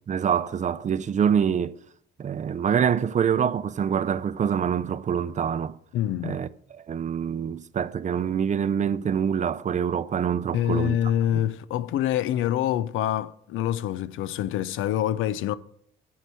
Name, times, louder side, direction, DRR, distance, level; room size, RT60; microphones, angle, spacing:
voice 1, 0.1-1.8 2.2-5.7 6.2-6.5 6.9-11.0 11.3-11.4, right 8 dB, 40° right, 0.5 m, -25 dB
voice 2, 5.9-6.4 10.5-15.6, left 11 dB, 85° left, 0.5 m, -26 dB
9.7 x 4.8 x 6.9 m
cardioid pair, 90°, 20 cm